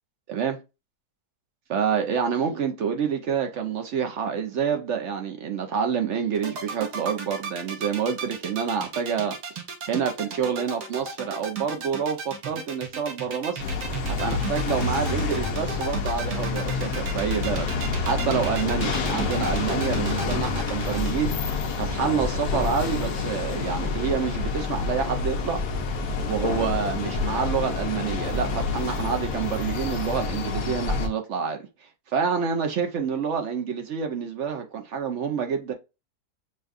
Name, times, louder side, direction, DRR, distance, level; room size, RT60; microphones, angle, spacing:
voice 1, 1.7-9.4 9.9-13.6 14.0-17.7 18.0-21.3 21.8-25.6 26.2-31.7 32.1-35.7, right 7 dB, 60° right, 0.9 m, -27 dB
sound 1, 6.3-21.1, right 4 dB, 80° right, 1.5 m, -34 dB
sound 2, 13.6-31.1, left 4 dB, 75° left, 1.3 m, -28 dB
6.4 x 2.3 x 2.5 m
omnidirectional pair, 1.7 m